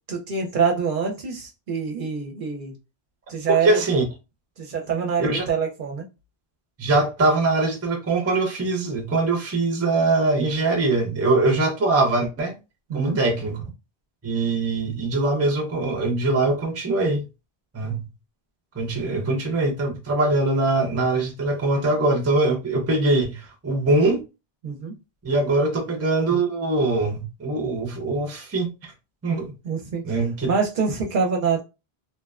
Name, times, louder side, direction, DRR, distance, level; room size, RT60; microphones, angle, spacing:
voice 1, 0.1-2.8 3.3-3.8 4.6-6.1 12.9-13.2 24.6-24.9 29.6-30.0 30.5-31.6, right 6 dB, 60° right, 0.6 m, -25 dB
voice 2, 3.5-4.0 5.2-5.4 6.8-12.6 12.9-13.6 14.2-17.2 17.7-18.0 18.8-24.2 25.2-28.9 29.2-29.5 30.0-30.5, right 2 dB, 20° right, 0.4 m, -22 dB
2.7 x 2.1 x 2.3 m
omnidirectional pair, 1.1 m